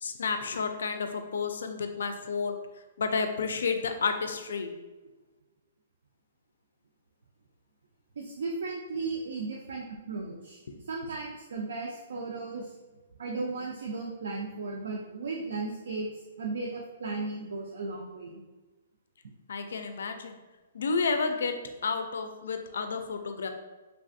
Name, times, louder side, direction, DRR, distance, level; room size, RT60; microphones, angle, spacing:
voice 1, 0.0-2.6 3.0-4.7 19.5-20.4 20.7-21.6 21.8-23.5, left 5 dB, 80° left, 7 dB, 0.3 m, -31 dB
voice 2, 8.2-10.6 10.8-12.7 13.2-16.1 16.4-18.4, right 3 dB, 75° right, -1 dB, 0.4 m, -35 dB
3.3 x 2.4 x 2.5 m, 1.2 s
hypercardioid pair, 180°, 0 cm